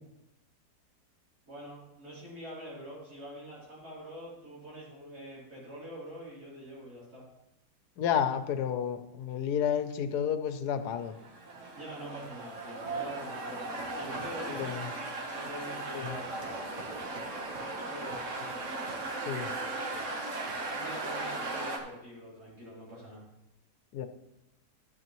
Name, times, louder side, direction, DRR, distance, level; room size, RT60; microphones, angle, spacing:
voice 1, 1.5-7.3 11.7-14.8 15.2-16.2 17.7-18.4 20.7-23.2, equal, 70° right, -8 dB, 3.9 m, -45 dB
voice 2, 8.0-11.1 14.5-14.9 15.9-16.2 19.3-19.5 23.9-24.1, left 8 dB, 80° left, 10 dB, 1.2 m, -31 dB
sound 1, 11.0-21.8, right 2 dB, 55° right, 1.4 m, -37 dB
12.0 x 8.0 x 3.0 m, 0.90 s
omnidirectional pair, 1.7 m